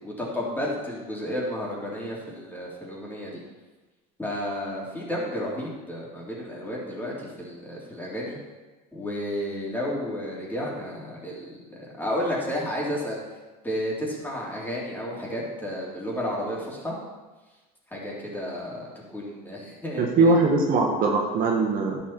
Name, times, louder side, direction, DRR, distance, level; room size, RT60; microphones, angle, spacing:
voice 1, 0.0-3.4 4.2-8.4 8.9-13.2 13.6-17.0 17.9-18.9 19.1-20.4, equal, 10° left, -5 dB, 3.8 m, -32 dB
voice 2, 20.0-22.0, right 3 dB, 45° right, 0 dB, 1.6 m, -21 dB
10.0 x 7.7 x 4.6 m, 1.2 s
supercardioid pair, 95°, 20 cm